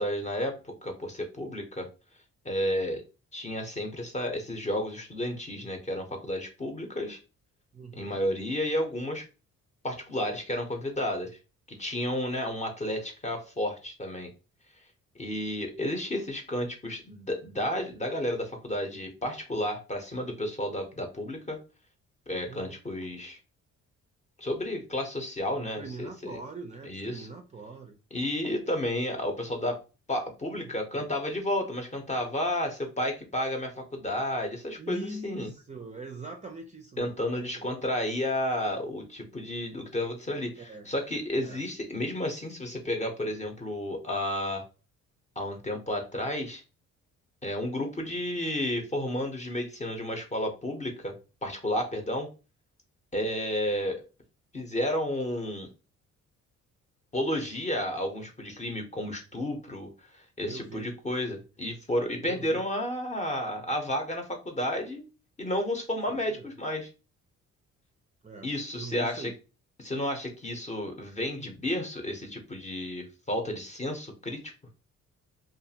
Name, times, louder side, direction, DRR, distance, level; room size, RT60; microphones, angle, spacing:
voice 1, 0.0-1.9 2.4-3.0 3.3-7.2 8.0-9.2 9.8-11.3 11.8-14.3 15.2-21.6 22.3-23.4 24.4-26.4 26.8-27.3 28.1-29.8 30.1-35.5 37.0-44.6 45.4-46.6 47.4-51.1 51.4-52.3 53.1-54.0 54.5-55.7 57.1-65.0 65.4-66.9 68.4-69.3 69.8-74.4, left 1 dB, 25° left, 3 dB, 0.7 m, -32 dB
voice 2, 7.7-8.2 22.5-22.8 25.6-28.0 30.6-31.1 34.8-37.6 40.6-40.9 41.4-41.6 60.5-60.9 62.2-62.6 66.1-66.5 68.2-69.3, right 3 dB, 25° right, 3 dB, 0.4 m, -43 dB
2.5 x 2.4 x 2.8 m, 0.31 s
cardioid pair, 90°, 30 cm